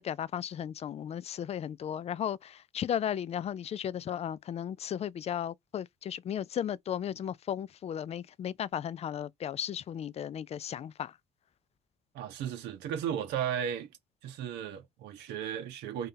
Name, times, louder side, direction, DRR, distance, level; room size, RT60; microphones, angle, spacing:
voice 1, 0.0-11.1, left 9 dB, 40° left, 0.4 m, -35 dB
voice 2, 12.1-13.9 14.2-16.1, right 9 dB, 85° right, 1.3 m, -35 dB
3.7 x 2.8 x 3.8 m
cardioid pair, 110°, 17 cm